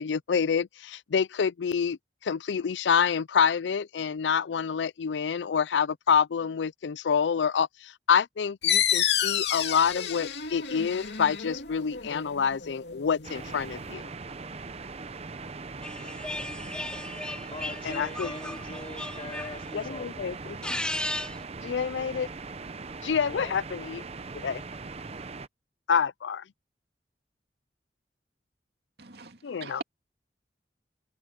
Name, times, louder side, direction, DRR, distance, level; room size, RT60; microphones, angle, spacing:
voice 1, 0.0-14.1 17.8-18.3 19.7-20.8 21.6-22.3 23.0-24.1 24.4-24.6 25.9-26.4 29.4-29.8, left 7 dB, 90° left, 0.4 m, -27 dB
sound 1, 8.6-13.9, left 9 dB, 75° left, 2.4 m, -30 dB
sound 2, 13.2-25.5, right 4 dB, 35° right, 0.8 m, -40 dB
sound 3, 15.8-19.9 20.5-21.4, left 1 dB, 5° left, 0.7 m, -36 dB
voice 2, 15.9-16.2 17.5-20.4 23.3-23.5, left 2 dB, 30° left, 4.1 m, -43 dB
voice 3, 29.0-29.8, right 4 dB, 65° right, 2.5 m, -42 dB
head